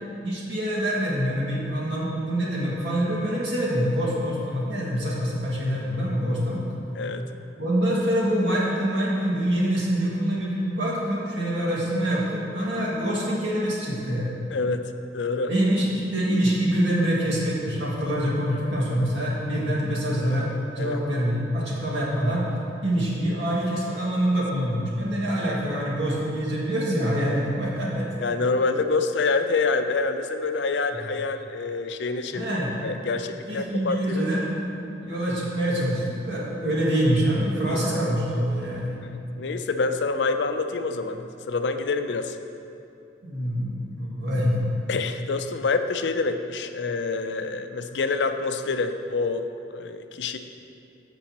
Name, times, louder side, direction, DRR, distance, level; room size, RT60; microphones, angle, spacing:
voice 1, 0.2-6.7 7.6-14.3 15.5-22.5 22.8-28.1 32.3-32.7 33.5-34.5 35.0-38.9 43.2-44.7, equal, 75° right, -6 dB, 2.0 m, -25 dB
voice 2, 14.5-14.8 15.1-15.5 20.8-21.0 27.3-27.4 28.2-34.2 37.7-38.1 39.0-42.4 44.9-50.4, left 4 dB, 70° left, 8 dB, 0.5 m, -27 dB
14.5 x 5.3 x 2.9 m, 2.7 s
head